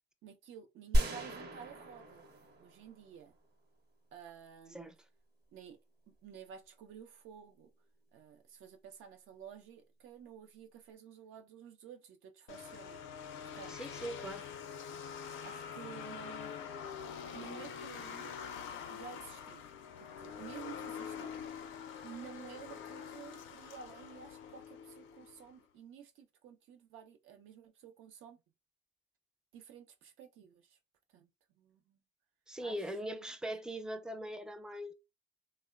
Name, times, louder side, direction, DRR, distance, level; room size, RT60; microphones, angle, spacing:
voice 1, 0.2-2.3 2.6-3.3 4.1-4.9 5.5-5.8 6.1-7.7 8.1-13.2 13.5-14.2 15.4-16.6 17.3-18.3 18.9-19.6 20.0-21.3 22.0-28.4 29.5-30.8 31.1-31.3 31.6-32.0 32.6-32.8 33.0-33.4, right 8 dB, 85° right, 0.6 m, -52 dB
sound 1, 0.9-3.3, equal, 55° right, 0.8 m, -34 dB
sound 2, 12.5-25.5, left 7 dB, 80° left, 0.4 m, -45 dB
voice 2, 13.7-14.5 32.5-34.9, right 1 dB, 5° right, 0.4 m, -41 dB
2.9 x 2.0 x 2.2 m
cardioid pair, 90°, 20 cm